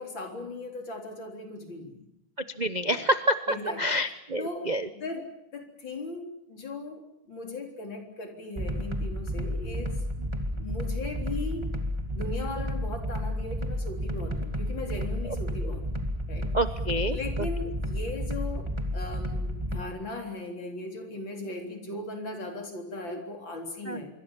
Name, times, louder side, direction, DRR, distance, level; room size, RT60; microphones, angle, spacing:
voice 1, 0.0-2.0 2.9-3.0 3.5-3.8 4.4-10.0 10.5-11.7 12.1-16.6 17.1-24.1, left 2 dB, 65° left, 3 dB, 4.5 m, -38 dB
voice 2, 2.6-4.9 9.4-9.5 15.2-15.4 16.5-17.5 23.1-23.2 23.8-24.0, equal, 45° right, 10 dB, 0.5 m, -28 dB
sound 1, 8.6-19.8, equal, 15° right, 2.1 m, -31 dB
26.0 x 23.5 x 7.3 m, 0.82 s
omnidirectional pair, 2.3 m